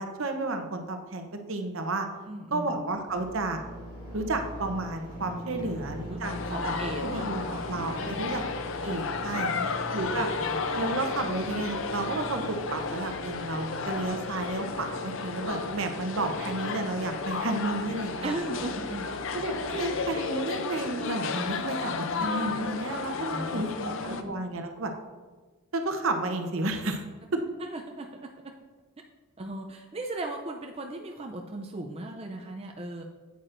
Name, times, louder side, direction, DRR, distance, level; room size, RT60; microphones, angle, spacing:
voice 1, 0.0-2.1 2.5-3.6 4.1-6.3 6.6-6.7 7.0-7.4 7.7-8.4 8.8-9.5 9.9-10.3 10.7-18.3 19.3-24.9 25.7-27.0 27.3-27.4, right 2 dB, 65° right, 5 dB, 0.8 m, -32 dB
voice 2, 2.3-2.7 5.6-6.2 6.4-7.6 8.0-8.4 9.5-9.7 10.1-10.6 13.8-13.9 18.2-19.1 19.7-19.9 22.1-22.3 23.3-24.3 27.3-28.5 29.4-33.0, right 2 dB, 25° right, 2 dB, 0.4 m, -38 dB
sound 1, 3.1-20.0, equal, 40° left, 2.4 m, -42 dB
sound 2, 6.2-24.2, left 4 dB, 60° left, 0.5 m, -33 dB
8.7 x 8.2 x 2.5 m, 1.3 s
head